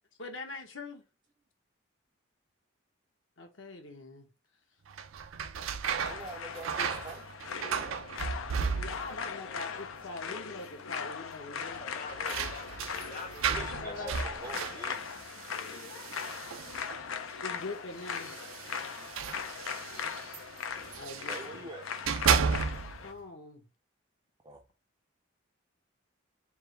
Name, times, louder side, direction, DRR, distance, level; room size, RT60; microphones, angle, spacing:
voice 1, 0.2-1.0 3.4-4.3 8.7-11.9 13.5-14.2 17.4-18.3 20.9-21.7 23.0-23.6, left 3 dB, 70° left, 1.1 m, -43 dB
sound 1, 4.9-9.3 9.5-10.2 10.5-10.6 11.7-17.1 18.0-21.5 21.9-23.1, right 6 dB, 90° right, 0.5 m, -34 dB
sound 2, 6.0-23.1, left 6 dB, 90° left, 0.5 m, -39 dB
voice 2, 6.1-7.2 13.5-15.1 21.3-21.9 24.4-24.6, right 2 dB, 25° right, 0.4 m, -44 dB
voice 3, 11.8-12.8 13.1-14.3 14.6-14.9, left 3 dB, 40° left, 0.7 m, -45 dB
3.5 x 2.6 x 4.4 m
head